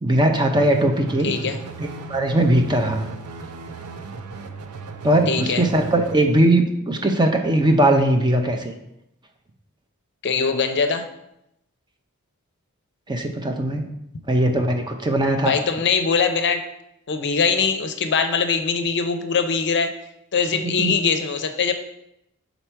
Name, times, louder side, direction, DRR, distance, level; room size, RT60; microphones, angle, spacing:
voice 1, 0.0-1.3 1.8-3.0 5.0-8.7 13.1-13.8 14.3-15.5 20.6-20.9, right 1 dB, 20° right, 4 dB, 0.6 m, -19 dB
sound 1, 0.5-6.2, right 4 dB, 75° right, 0.5 m, -36 dB
voice 2, 1.2-1.6 5.3-5.7 10.2-11.1 15.4-16.6 17.1-19.9 20.3-21.7, left 5 dB, 55° left, 8 dB, 0.6 m, -22 dB
5.9 x 4.0 x 4.5 m, 0.82 s
head